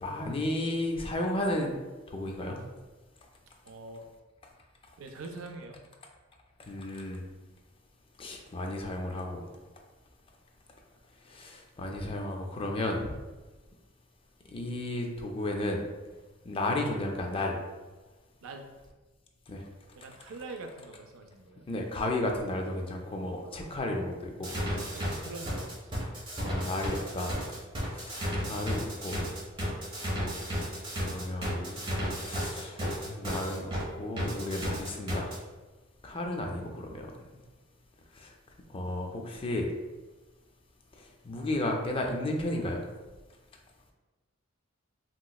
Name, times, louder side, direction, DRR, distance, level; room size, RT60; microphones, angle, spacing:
voice 1, 0.0-1.7 2.1-2.6 6.7-7.2 8.2-9.5 11.3-13.1 14.5-15.8 16.4-17.6 19.5-19.6 21.7-24.5 26.4-27.4 27.9-29.2 31.1-31.8 32.2-32.8 33.1-35.3 36.0-37.1 38.2-38.3 38.7-39.7 41.2-42.8, left 1 dB, 25° left, 2 dB, 0.4 m, -33 dB
voice 2, 3.6-4.1 5.0-5.8 18.4-18.7 19.9-21.7 23.4-23.7 24.9-25.9, right 3 dB, 75° right, 5 dB, 0.4 m, -44 dB
sound 1, 24.4-33.8 34.2-35.4, equal, 25° right, 0.8 m, -33 dB
3.1 x 2.9 x 2.3 m, 1.2 s
head